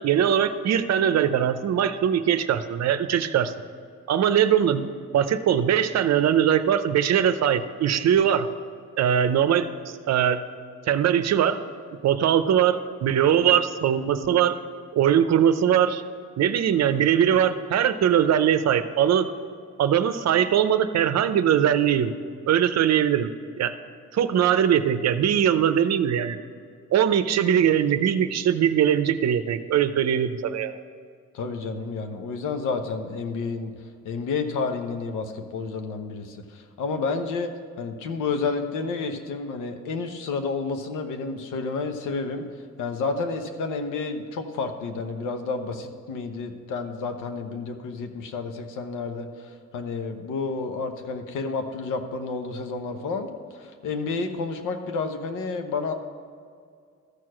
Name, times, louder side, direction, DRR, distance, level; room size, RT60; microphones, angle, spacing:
voice 1, 0.0-3.5 4.1-4.9 5.1-8.5 9.0-9.7 10.1-10.4 10.9-11.6 12.0-14.5 14.9-16.0 16.4-19.3 19.8-22.1 22.5-23.3 23.6-23.7 24.1-26.4 26.9-30.7, right 9 dB, 60° right, 11 dB, 0.7 m, -21 dB
voice 2, 31.3-33.7 34.0-37.5 37.8-42.4 42.8-55.9, left 4 dB, 85° left, 7 dB, 1.0 m, -30 dB
13.5 x 4.7 x 6.2 m, 2.2 s
cardioid pair, 90°, 30 cm